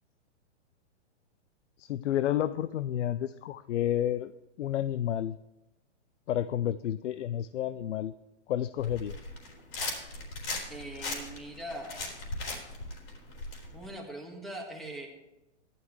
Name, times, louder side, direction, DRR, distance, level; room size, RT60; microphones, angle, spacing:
voice 1, 1.8-4.3 4.6-5.4 6.3-8.1 8.5-9.2, left 11 dB, 80° left, 14 dB, 0.6 m, -30 dB
sound 1, 8.8-13.9, left 2 dB, 50° left, 4.1 m, -38 dB
voice 2, 10.7-12.0 13.7-15.1, right 1 dB, ahead, 1 dB, 1.7 m, -41 dB
14.5 x 12.0 x 3.1 m, 0.98 s
hypercardioid pair, 155°, 35 cm